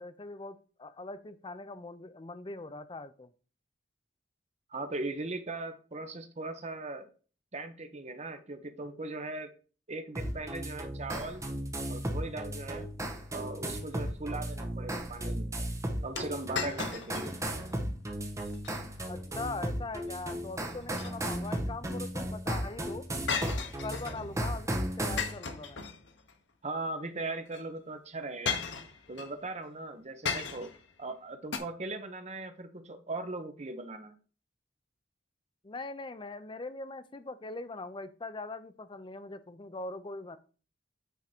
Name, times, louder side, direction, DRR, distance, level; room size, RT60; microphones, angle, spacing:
voice 1, 0.0-3.3 19.1-23.1 23.8-25.9 35.6-40.4, left 3 dB, 25° left, 12 dB, 0.5 m, -41 dB
voice 2, 4.7-7.1 7.5-9.5 9.9-11.4 11.9-12.9 13.3-15.5 16.0-17.4 26.6-28.6 29.1-30.7 31.0-34.2, right 2 dB, 35° right, 8 dB, 1.0 m, -39 dB
sound 1, 10.2-25.3, right 1 dB, 15° right, 1.1 m, -35 dB
sound 2, 16.2-17.3 17.7-17.8 18.4-18.8 20.7-21.5 23.3-24.3 25.2-26.3 27.5-27.6 28.4-29.3 30.2-30.8 31.5-31.6, left 6 dB, 70° left, 1.1 m, -36 dB
9.1 x 3.7 x 4.4 m, 0.37 s
head